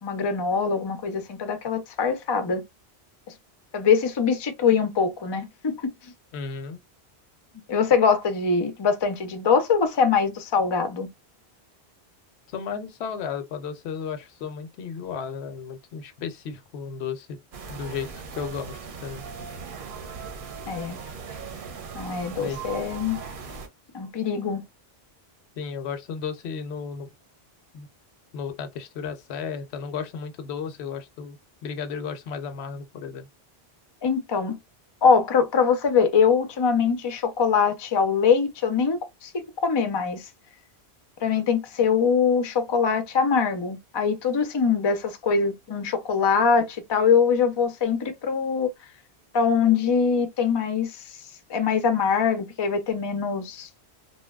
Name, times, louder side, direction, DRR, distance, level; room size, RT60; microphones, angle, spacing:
voice 1, 0.0-2.6 3.7-5.9 7.7-11.1 20.7-21.0 21.9-23.2 23.9-24.6 34.0-34.6 35.0-40.2 41.2-48.7 49.3-51.0 51.5-53.7, left 6 dB, 40° left, 0.4 m, -23 dB
voice 2, 6.3-6.8 12.5-17.4 17.7-19.2 22.3-22.6 25.6-27.1 27.7-27.9 28.3-33.3, left 6 dB, 85° left, 0.8 m, -34 dB
sound 1, 17.5-23.7, right 5 dB, 60° right, 0.7 m, -38 dB
2.7 x 2.2 x 2.2 m
omnidirectional pair, 1.1 m